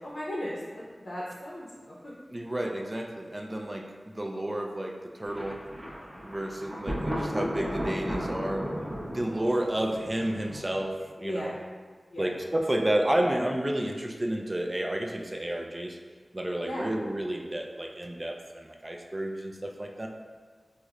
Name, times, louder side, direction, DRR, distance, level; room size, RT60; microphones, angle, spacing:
voice 1, 0.0-2.1 11.2-11.6 12.1-12.3 16.6-16.9, equal, 70° left, -7 dB, 0.6 m, -36 dB
voice 2, 2.3-5.6 6.2-11.5 12.2-16.0 16.3-20.1, right 1 dB, 25° right, 1 dB, 0.3 m, -31 dB
Thunder, 5.3-11.1, equal, 50° right, 0.9 m, -35 dB
4.6 x 2.1 x 2.4 m, 1.5 s
wide cardioid pair, 80°, 0 cm